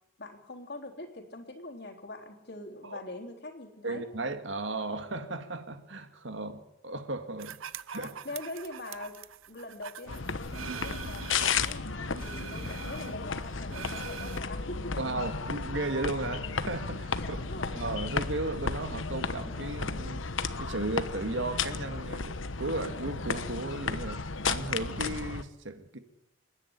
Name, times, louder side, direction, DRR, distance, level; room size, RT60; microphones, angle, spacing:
voice 1, 0.2-4.0 7.9-9.2 9.5-15.0 17.2-17.8, left 2 dB, 55° left, 3.5 m, -43 dB
voice 2, 3.8-7.6 7.9-8.1 15.0-17.4 17.7-20.2 20.6-26.0, right 2 dB, 65° right, 2.0 m, -35 dB
sound 1, 7.4-11.7 12.1-14.4, right 8 dB, 85° right, 0.7 m, -43 dB
sound 2, 10.1-25.4, left 5 dB, 75° left, 1.1 m, -34 dB
28.5 x 10.5 x 9.9 m
head